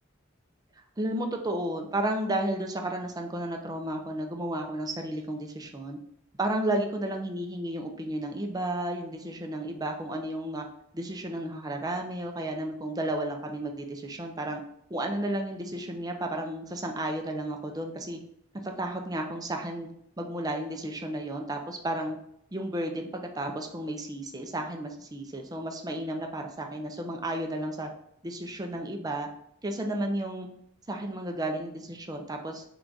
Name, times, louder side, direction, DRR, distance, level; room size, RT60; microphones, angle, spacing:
voice 1, 1.0-6.0 6.4-10.7 10.9-14.6 14.9-18.2 18.5-19.9 20.2-22.2 22.5-27.9 28.2-29.3 29.6-30.5 30.9-32.6, right 1 dB, 20° right, 3 dB, 0.5 m, -32 dB
3.9 x 2.5 x 4.5 m, 0.72 s
head